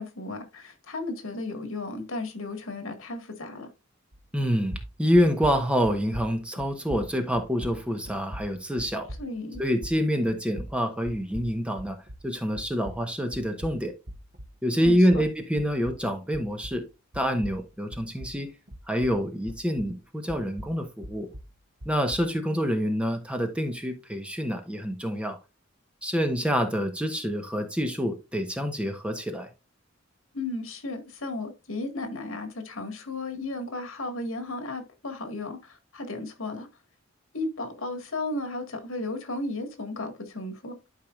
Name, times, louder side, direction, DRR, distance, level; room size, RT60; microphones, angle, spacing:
voice 1, 0.0-3.7 9.2-9.6 14.8-15.3 30.3-36.7 37.3-40.9, left 2 dB, 80° left, 1.8 m, -34 dB
sound 1, 4.1-4.4 4.7-12.3 12.6-16.9 17.1-20.0 20.3-22.3, equal, 45° right, 1.2 m, -42 dB
voice 2, 4.3-9.1 9.6-12.0 12.2-13.9 14.6-16.9 17.1-18.5 18.9-21.3 21.8-25.4 26.0-29.5, equal, 5° right, 1.0 m, -26 dB
12.0 x 4.7 x 2.4 m
head